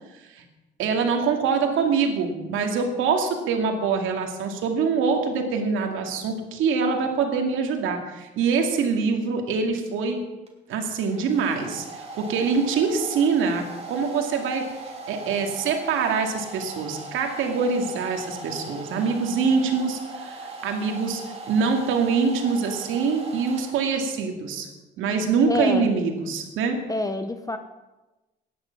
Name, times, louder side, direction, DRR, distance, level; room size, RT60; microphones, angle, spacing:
voice 1, 0.8-10.2 10.7-11.8 12.2-14.6 15.1-21.2 21.5-24.7 25.0-26.8, right 5 dB, 90° right, 3 dB, 2.3 m, -24 dB
Domestic sounds home sounds, 10.5-24.2, right 3 dB, 30° right, 3.1 m, -39 dB
voice 2, 25.5-25.9 26.9-27.6, left 2 dB, 15° left, 8 dB, 0.9 m, -26 dB
16.0 x 10.0 x 5.9 m, 1.1 s
cardioid pair, 90°, 20 cm